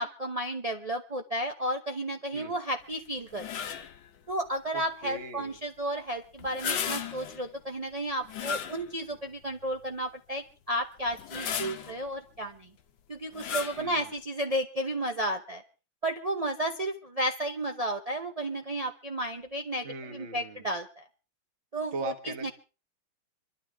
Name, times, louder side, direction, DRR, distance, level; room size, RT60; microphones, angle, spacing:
voice 1, 0.0-3.7 4.3-12.7 13.1-15.6 16.0-21.0 21.7-22.1 22.4-22.5, right 1 dB, 55° right, 3 dB, 0.4 m, -33 dB
sound 1, 3.3-4.0 6.4-7.5 8.3-9.2 9.7-9.8 11.1-12.0 13.3-13.9, left 8 dB, 70° left, 1.6 m, -35 dB
voice 2, 4.7-5.6 13.7-14.1 19.8-20.7 21.9-22.5, right 3 dB, 35° right, 4 dB, 1.6 m, -39 dB
26.5 x 12.5 x 3.4 m, 0.34 s
omnidirectional pair, 2.2 m